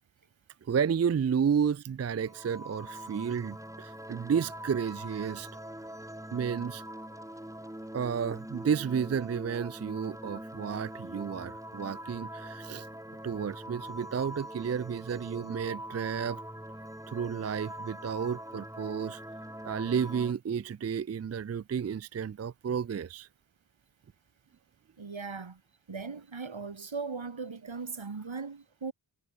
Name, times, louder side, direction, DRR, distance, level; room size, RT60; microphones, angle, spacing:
voice 1, 0.6-5.5 6.3-6.8 7.9-12.9 13.2-16.4 17.1-19.2 19.6-23.3, right 7 dB, 35° right, 0.4 m, -31 dB
sound 1, 2.2-20.3, equal, 5° right, 3.7 m, -43 dB
voice 2, 25.0-25.6 25.9-28.9, right 4 dB, 75° right, 5.7 m, -38 dB
wide cardioid pair, 65°, 47 cm